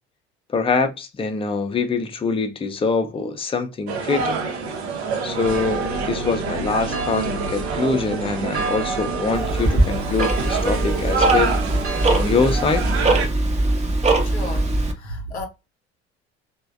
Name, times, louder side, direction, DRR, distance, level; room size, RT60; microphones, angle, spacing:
voice 1, 0.5-4.5 5.2-11.6 12.1-12.9, left 4 dB, 15° left, 0.6 m, -24 dB
sound 1, 3.9-13.3, right 4 dB, 75° right, 0.6 m, -27 dB
sound 2, 5.4-12.5, right 3 dB, 45° right, 0.9 m, -31 dB
Tick-tock, 9.3-14.9, right 2 dB, 20° right, 0.7 m, -21 dB
voice 2, 14.2-15.5, left 1 dB, 90° left, 0.6 m, -33 dB
3.2 x 2.1 x 2.3 m
figure-of-eight pair, 60°, 32 cm